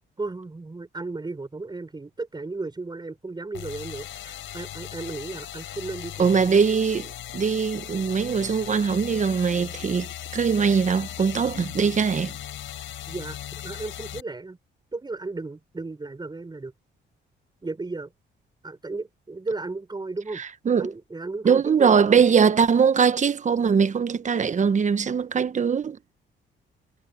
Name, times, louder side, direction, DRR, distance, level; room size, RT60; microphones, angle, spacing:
voice 1, 0.2-6.6 13.1-14.6 14.9-16.7 17.6-18.1 18.6-20.4 20.8-22.2, right 3 dB, 20° right, 6.5 m, -35 dB
sound 1, 3.5-14.2, left 12 dB, 80° left, 5.0 m, -38 dB
voice 2, 6.2-12.3 20.4-20.9 21.4-26.0, right 6 dB, 40° right, 1.1 m, -21 dB
cardioid pair, 90°, 20 cm